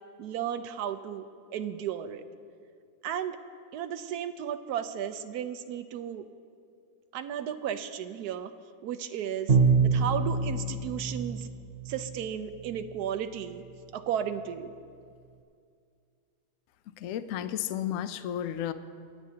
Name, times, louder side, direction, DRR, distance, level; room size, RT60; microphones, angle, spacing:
voice 1, 0.2-1.3 1.5-2.2 3.0-3.4 3.7-6.2 7.1-8.5 8.8-11.5 11.9-13.6 13.9-14.7, right 9 dB, 70° right, 9 dB, 1.1 m, -34 dB
Bowed string instrument, 9.5-12.3, right 4 dB, 45° right, 0.8 m, -26 dB
voice 2, 17.0-18.7, left 11 dB, 75° left, 12 dB, 0.7 m, -32 dB
26.5 x 9.1 x 2.8 m, 2.3 s
omnidirectional pair, 1.8 m